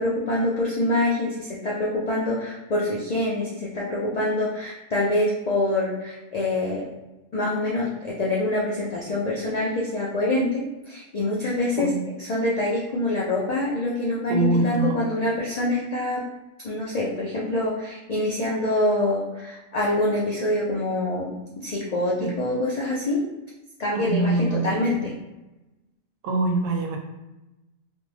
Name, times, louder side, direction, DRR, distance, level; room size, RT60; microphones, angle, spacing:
voice 1, 0.0-6.9 7.3-11.9 12.2-16.2 16.6-21.3 21.6-23.2 23.8-25.1, left 1 dB, 75° left, -5 dB, 0.3 m, -25 dB
voice 2, 14.3-15.0 22.2-22.3 23.9-24.8 26.2-27.0, right 3 dB, 80° right, 2 dB, 0.9 m, -24 dB
2.5 x 2.2 x 3.2 m, 1.0 s
omnidirectional pair, 1.3 m